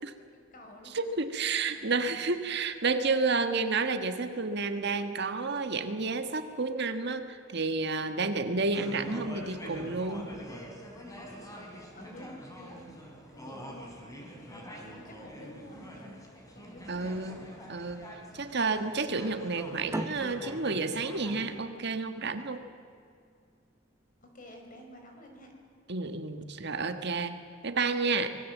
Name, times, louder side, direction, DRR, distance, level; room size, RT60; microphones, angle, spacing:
voice 1, 0.3-1.0 1.7-2.4 11.9-12.3 12.6-12.9 13.3-16.1 16.5-17.3 24.2-25.5, left 1 dB, 45° left, 3 dB, 5.0 m, -51 dB
voice 2, 0.9-10.3 16.9-18.1 18.3-22.6 25.9-27.4 27.6-28.4, right 4 dB, 60° right, 8 dB, 1.6 m, -30 dB
sound 1, 8.7-21.5, equal, 15° left, 4.1 m, -45 dB
sound 2, 19.9-23.1, right 1 dB, 15° right, 0.6 m, -39 dB
25.0 x 22.0 x 7.4 m, 2.3 s
head